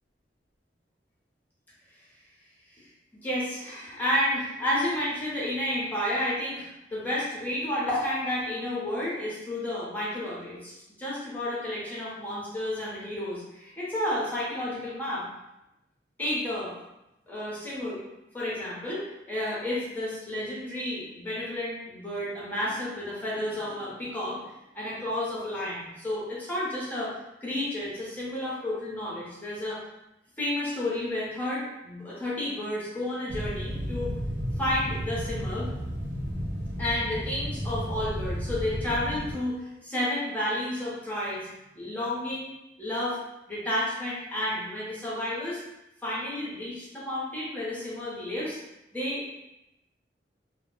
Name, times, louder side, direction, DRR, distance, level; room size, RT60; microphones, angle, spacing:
voice 1, 3.2-10.7 11.0-15.2 16.2-16.8 17.3-18.0 18.3-24.4 24.7-29.8 30.4-34.1 34.6-35.7 36.8-41.5 41.7-42.5 42.8-43.2 43.5-45.6 46.0-48.6 48.9-49.2, left 1 dB, 10° left, -8 dB, 0.7 m, -31 dB
sound 1, 33.3-39.3, equal, 85° right, 0.6 m, -33 dB
2.2 x 2.1 x 3.0 m, 0.91 s
head